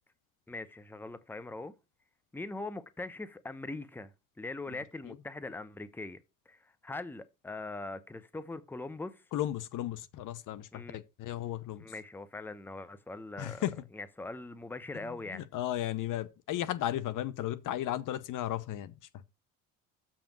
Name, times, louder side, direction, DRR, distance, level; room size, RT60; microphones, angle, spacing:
voice 1, 0.5-1.7 2.3-4.1 4.4-9.2 10.7-11.0 11.8-13.6 13.9-15.4, left 2 dB, 5° left, 0.8 m, -41 dB
voice 2, 9.3-11.8 13.4-13.7 15.0-18.9, left 13 dB, 50° left, 0.8 m, -35 dB
7.2 x 5.2 x 6.0 m
hypercardioid pair, 65°, 41 cm